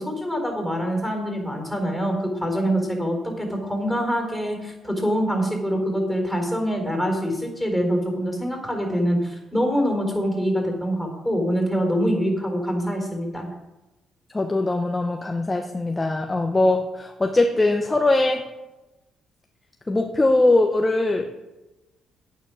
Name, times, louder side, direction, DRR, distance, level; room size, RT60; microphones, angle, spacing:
voice 1, 0.0-13.4, equal, ahead, 1 dB, 4.3 m, -25 dB
voice 2, 14.3-18.4 19.9-21.3, left 2 dB, 20° left, 4 dB, 0.9 m, -21 dB
9.1 x 9.1 x 6.2 m, 1.0 s
cardioid pair, 90°, 0 cm